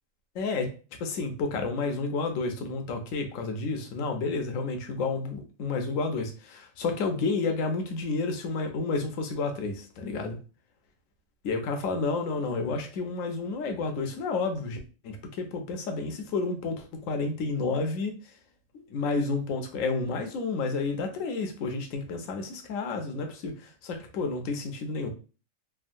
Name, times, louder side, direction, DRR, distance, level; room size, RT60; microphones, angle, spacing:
voice 1, 0.3-0.7 1.0-10.4 11.4-14.8 15.0-18.1 18.9-25.1, left 3 dB, 80° left, 5 dB, 1.0 m, -30 dB
3.5 x 2.1 x 2.5 m, 0.36 s
omnidirectional pair, 1.4 m